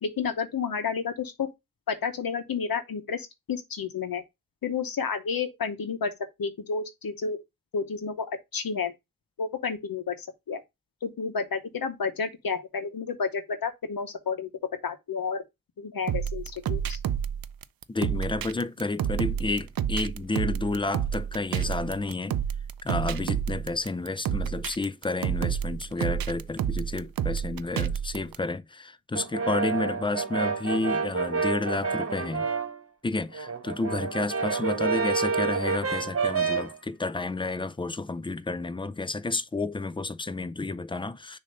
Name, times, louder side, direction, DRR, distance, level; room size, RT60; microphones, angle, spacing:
voice 1, 0.0-1.5 1.9-4.2 4.6-6.1 6.4-7.4 7.7-8.9 9.4-10.6 11.0-14.5 14.8-15.4 15.8-17.0, left 5 dB, 80° left, 0.9 m, -31 dB
sound 1, 16.1-28.4, right 9 dB, 85° right, 0.5 m, -29 dB
voice 2, 17.9-22.4 22.8-32.5 33.0-41.4, left 3 dB, 15° left, 0.5 m, -31 dB
Brass instrument, 29.1-32.8 33.2-36.8, right 5 dB, 40° right, 1.2 m, -29 dB
6.6 x 2.8 x 5.3 m
wide cardioid pair, 75°, 34 cm